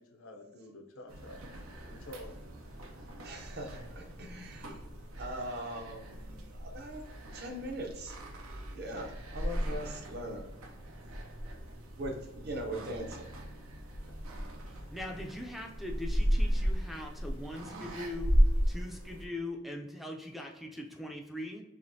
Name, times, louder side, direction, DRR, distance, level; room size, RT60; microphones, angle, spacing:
voice 1, 0.0-1.5 1.9-2.6, left 1 dB, 80° left, 5 dB, 0.6 m, -49 dB
sound 1, 1.1-19.3, equal, 90° right, 0.7 m, -35 dB
voice 2, 3.2-4.7 5.2-7.0 7.3-8.2 8.7-10.4 12.0-13.3, right 1 dB, 50° right, 2 dB, 0.7 m, -40 dB
voice 3, 14.7-18.3 18.7-21.6, left 1 dB, ahead, 1 dB, 0.4 m, -41 dB
5.0 x 2.9 x 2.7 m, 1.0 s
head